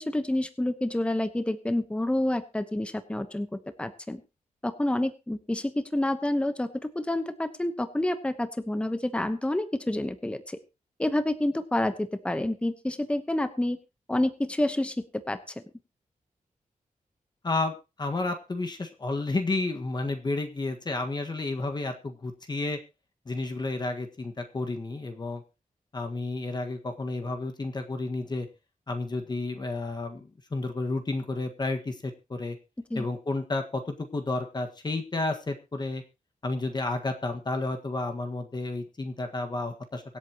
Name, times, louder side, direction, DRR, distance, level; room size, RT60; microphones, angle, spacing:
voice 1, 0.0-4.2 4.6-10.6 11.0-13.8 14.1-15.5 32.9-33.1, left 1 dB, 10° left, 10 dB, 1.0 m, -28 dB
voice 2, 17.4-22.8 23.2-25.4 25.9-28.5 28.9-32.6 32.9-36.0 36.4-40.0, left 2 dB, 30° left, 5 dB, 1.6 m, -31 dB
24.0 x 8.2 x 3.0 m, 0.28 s
wide cardioid pair, 155°, 14 cm